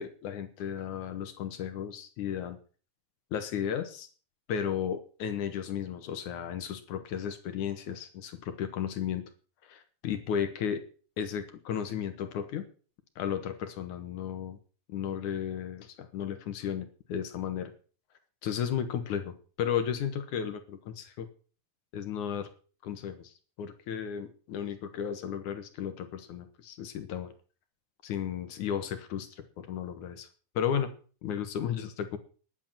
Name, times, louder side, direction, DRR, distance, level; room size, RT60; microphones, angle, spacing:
voice 1, 0.0-2.6 3.3-4.1 4.5-9.2 9.7-10.8 11.2-12.7 13.2-14.6 14.9-17.7 18.4-21.3 21.9-22.5 22.8-23.3 23.6-27.3 28.0-30.3 30.6-30.9 31.2-32.2, left 8 dB, 60° left, 9 dB, 2.3 m, -34 dB
10.5 x 10.0 x 7.4 m, 0.39 s
omnidirectional pair, 4.7 m